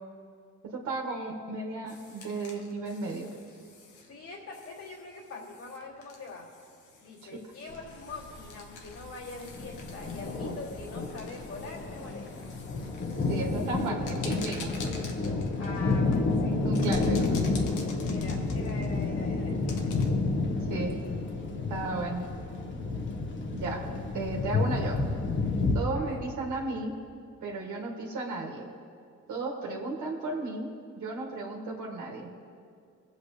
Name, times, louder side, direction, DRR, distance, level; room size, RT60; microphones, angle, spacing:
voice 1, 0.7-3.3 7.2-7.3 13.3-14.7 16.6-17.4 20.7-20.9 21.7-22.3 23.5-23.8 24.1-25.0 25.7-26.9 27.4-28.7 29.3-32.3, right 3 dB, 75° right, -1 dB, 1.9 m, -34 dB
sound 1, 1.9-20.1, left 4 dB, 85° left, 1.4 m, -49 dB
voice 2, 4.1-6.5 7.0-12.5 15.6-16.6 18.1-19.6 20.7-21.0 25.9-26.2, left 3 dB, 65° left, -4 dB, 2.5 m, -44 dB
sound 2, 7.7-25.8, left 3 dB, 40° left, 1.3 m, -30 dB
23.5 x 8.1 x 3.3 m, 2.3 s
cardioid pair, 90°, 30 cm